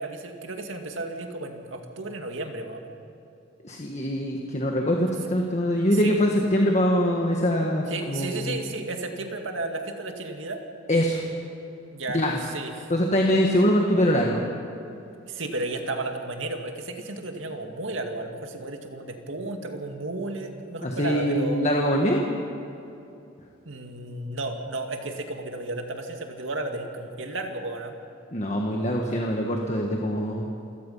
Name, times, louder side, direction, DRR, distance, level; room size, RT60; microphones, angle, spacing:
voice 1, 0.0-3.0 5.9-6.2 7.9-10.6 11.9-12.9 15.3-21.6 23.6-27.9, right 2 dB, 75° right, 4 dB, 2.3 m, -33 dB
voice 2, 3.6-8.6 10.9-11.2 12.1-12.4 12.9-14.4 20.8-22.2 28.3-30.5, equal, 35° left, 1 dB, 1.6 m, -23 dB
28.0 x 16.5 x 5.6 m, 2.7 s
head